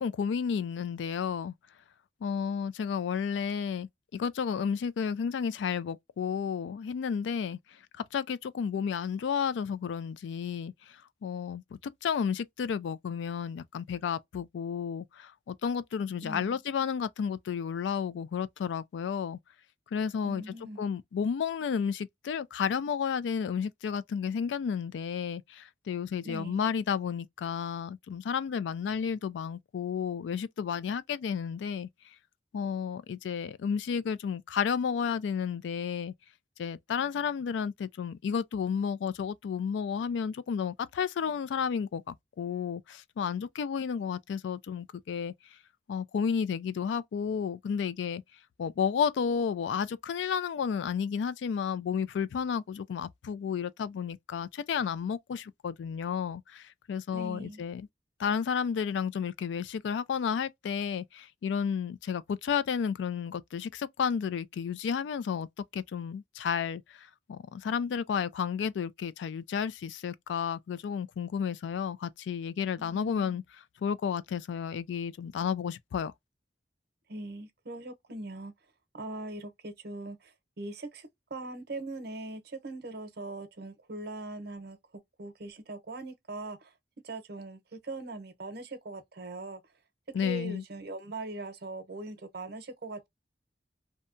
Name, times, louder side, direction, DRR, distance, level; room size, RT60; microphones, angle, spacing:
voice 1, 0.0-1.5 2.2-7.6 8.1-10.7 11.2-19.4 19.9-31.9 32.5-36.1 36.6-45.3 45.9-48.2 48.6-57.9 58.2-65.5 65.7-73.4 73.8-76.1 90.1-90.6, left 7 dB, 90° left, 0.3 m, -32 dB
voice 2, 16.2-16.6 20.2-20.8 26.2-26.7 57.1-57.6 72.8-73.4 77.1-78.5 78.9-80.2 80.6-84.8 85.2-86.7 87.0-89.6 90.2-93.1, right 2 dB, 65° right, 0.7 m, -41 dB
2.7 x 2.1 x 2.5 m
head